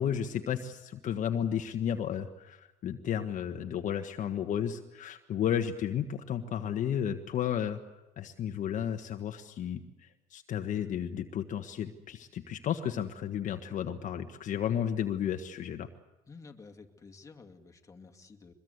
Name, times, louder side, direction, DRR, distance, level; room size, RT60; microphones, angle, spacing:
voice 1, 0.0-7.8 8.2-9.8 10.3-15.9, left 9 dB, 50° left, 6 dB, 1.4 m, -33 dB
voice 2, 16.3-18.5, left 4 dB, 20° left, 4 dB, 2.3 m, -52 dB
23.5 x 21.5 x 8.1 m, 1.0 s
supercardioid pair, 110°, 17 cm